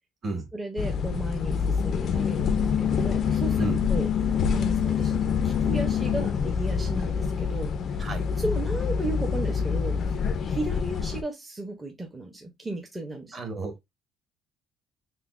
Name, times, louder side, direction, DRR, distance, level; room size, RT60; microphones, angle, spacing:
voice 1, 0.5-4.1 4.5-8.0 8.4-13.4, right 2 dB, 10° right, 0.6 m, -35 dB
sound 1, 0.8-11.2, left 6 dB, 40° left, 0.3 m, -26 dB
voice 2, 13.3-13.7, right 2 dB, 25° right, 1.0 m, -31 dB
5.7 x 2.0 x 2.3 m
cardioid pair, 160°, 0 cm